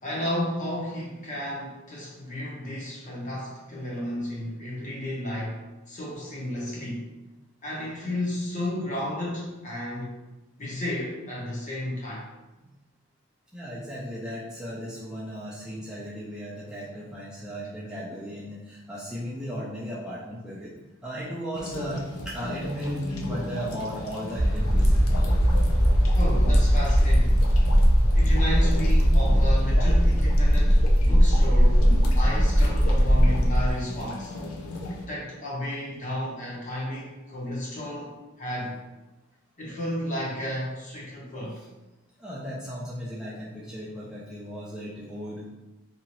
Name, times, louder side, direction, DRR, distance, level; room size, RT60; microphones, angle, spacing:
voice 1, 0.0-5.6 5.9-7.1 7.6-10.1 10.6-12.2 26.1-27.5 28.1-31.9 32.2-34.3 35.1-38.1 38.4-38.8 39.6-41.6, left 1 dB, 35° left, -5 dB, 0.9 m, -32 dB
voice 2, 13.5-20.8 21.0-22.0 22.3-25.4 42.2-45.5, equal, 5° right, -9 dB, 0.4 m, -36 dB
sound 1, 21.5-35.1, left 2 dB, 80° left, 0.5 m, -37 dB
sound 2, 24.4-33.7, equal, 25° right, 0.9 m, -19 dB
2.8 x 2.4 x 2.9 m, 1.1 s
head